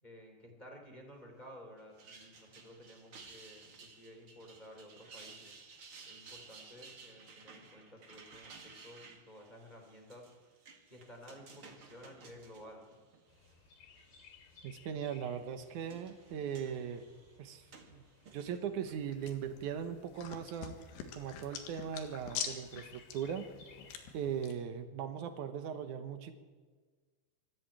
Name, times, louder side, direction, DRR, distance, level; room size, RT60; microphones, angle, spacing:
voice 1, 0.0-5.6 6.0-10.2 10.9-12.8, equal, 10° left, 0 dB, 3.1 m, -54 dB
sound 1, 1.8-13.5 14.0-14.6 15.4-18.6, right 4 dB, 40° right, 2.2 m, -56 dB
Chirp tweet, 13.3-24.1, left 5 dB, 60° left, 4.5 m, -61 dB
voice 2, 14.6-17.1 17.4-18.0 18.3-20.8 21.1-23.5 24.1-26.3, right 8 dB, 75° right, 8 dB, 1.8 m, -39 dB
sound 2, 18.8-24.5, left 8 dB, 90° left, 4.1 m, -45 dB
22.5 x 14.0 x 8.9 m, 1.4 s
omnidirectional pair, 5.1 m